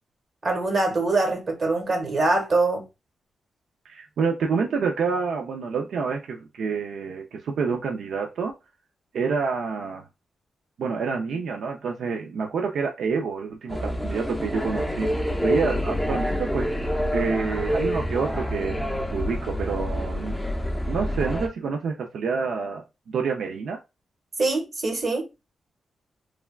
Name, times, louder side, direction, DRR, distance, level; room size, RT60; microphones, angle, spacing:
voice 1, 0.4-2.8 24.4-25.3, right 2 dB, 45° right, 1.1 m, -23 dB
voice 2, 3.8-8.5 9.1-10.0 10.8-16.7 17.1-18.9 19.1-20.4 20.9-23.8, right 5 dB, 80° right, 0.4 m, -28 dB
sound 1, 13.7-21.5, equal, 5° left, 0.5 m, -27 dB
3.3 x 2.2 x 2.3 m
cardioid pair, 95°, 0 cm